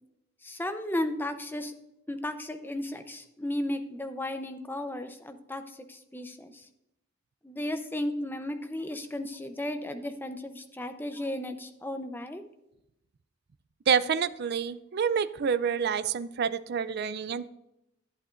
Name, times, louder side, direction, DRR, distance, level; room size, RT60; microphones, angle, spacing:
voice 1, 0.4-1.7 2.1-6.7 7.4-12.4, left 1 dB, 10° left, 8 dB, 0.7 m, -34 dB
voice 2, 13.9-17.5, right 7 dB, 50° right, 14 dB, 0.4 m, -28 dB
11.0 x 8.6 x 2.5 m, 0.86 s
head